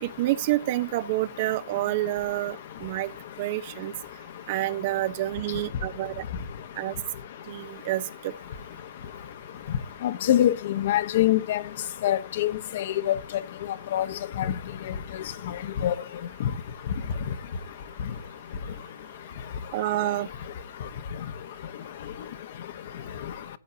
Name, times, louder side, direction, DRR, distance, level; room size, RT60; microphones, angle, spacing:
voice 1, 0.0-3.1 3.4-3.9 4.5-6.2 6.8-7.0 7.5-8.3 19.7-20.3, right 16 dB, 45° right, 0.8 m, -28 dB
voice 2, 10.0-11.6 12.0-13.2 13.9-14.1 14.4-14.5 15.8-15.9, left 12 dB, 55° left, 1.2 m, -23 dB
16.0 x 7.9 x 2.8 m
hypercardioid pair, 135°, 0 cm